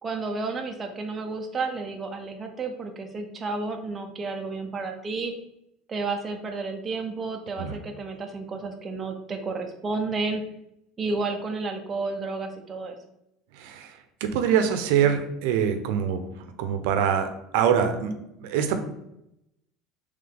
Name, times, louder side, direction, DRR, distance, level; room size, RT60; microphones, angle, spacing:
voice 1, 0.0-5.3 5.9-10.4 11.0-13.0, right 3 dB, 20° right, 3 dB, 0.4 m, -31 dB
voice 2, 13.6-13.9 14.2-16.2 16.6-18.1 18.4-18.8, right 8 dB, 75° right, 7 dB, 0.5 m, -24 dB
3.4 x 3.1 x 3.8 m, 0.83 s
cardioid pair, 160°, 0 cm